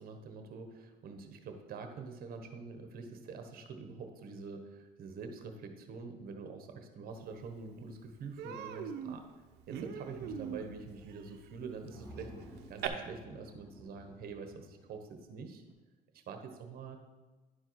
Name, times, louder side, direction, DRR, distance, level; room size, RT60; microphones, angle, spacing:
voice 1, 0.0-9.3 9.7-12.3 12.7-15.6 16.3-17.0, right 4 dB, 60° right, 5 dB, 1.3 m, -46 dB
Human voice, 7.4-7.5 7.8-8.0 8.4-12.9, right 8 dB, 80° right, 0.8 m, -42 dB
sound 1, 10.2-11.2 11.5-11.6 11.9-15.3, equal, 15° left, 1.4 m, -53 dB
11.0 x 4.5 x 4.7 m, 1.3 s
cardioid pair, 110°, 17 cm